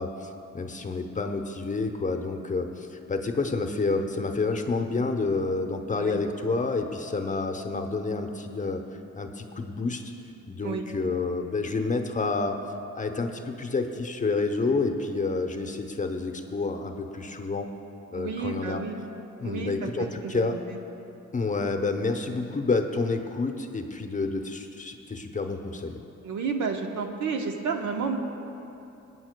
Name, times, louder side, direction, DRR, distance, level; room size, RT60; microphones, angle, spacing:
voice 1, 0.0-8.8 9.1-10.1 10.5-12.6 13.0-17.7 18.1-18.8 19.4-20.6 21.3-26.0, left 3 dB, 25° left, 5 dB, 0.8 m, -29 dB
voice 2, 18.1-19.0 19.4-19.7 20.0-20.6 26.2-28.2, right 5 dB, 75° right, 4 dB, 1.0 m, -31 dB
26.5 x 9.0 x 2.2 m, 2.8 s
cardioid pair, 90°, 30 cm